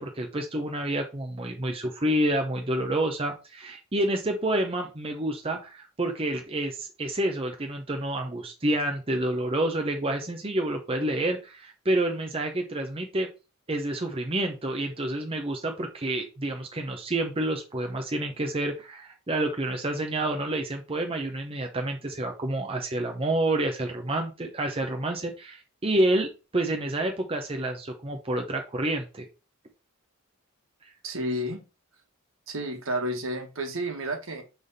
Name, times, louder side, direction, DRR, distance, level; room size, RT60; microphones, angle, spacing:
voice 1, 0.0-13.3 13.7-29.2, right 1 dB, 25° right, 2 dB, 0.8 m, -28 dB
voice 2, 31.0-31.6 32.5-34.4, right 1 dB, 65° right, 4 dB, 1.5 m, -31 dB
6.1 x 3.5 x 5.5 m, 0.30 s
head